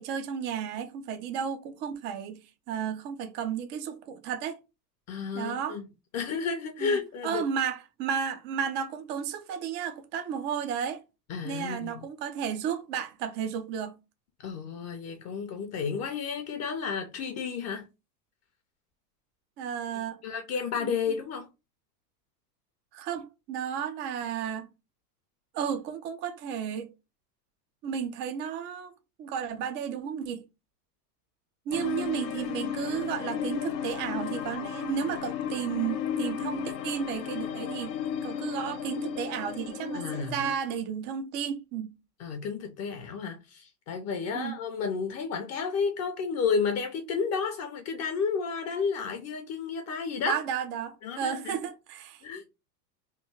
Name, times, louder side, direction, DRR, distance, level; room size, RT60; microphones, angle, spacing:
voice 1, 0.0-2.4 2.7-4.6 5.3-5.8 6.8-11.0 11.4-13.9 19.6-20.2 20.8-20.9 22.9-24.7 25.5-26.9 27.8-28.9 29.2-30.4 31.7-37.9 38.2-41.9 44.3-44.6 50.2-52.2, right 8 dB, 25° right, 0.4 m, -33 dB
voice 2, 5.1-5.9 6.1-7.4 11.3-12.0 14.4-17.9 20.2-21.5 39.9-40.5 42.2-50.4 51.0-51.6 52.2-52.4, left 5 dB, 30° left, 0.6 m, -32 dB
sound 1, 31.7-40.5, left 9 dB, 80° left, 0.7 m, -34 dB
3.2 x 2.2 x 3.4 m
hypercardioid pair, 105°, 49 cm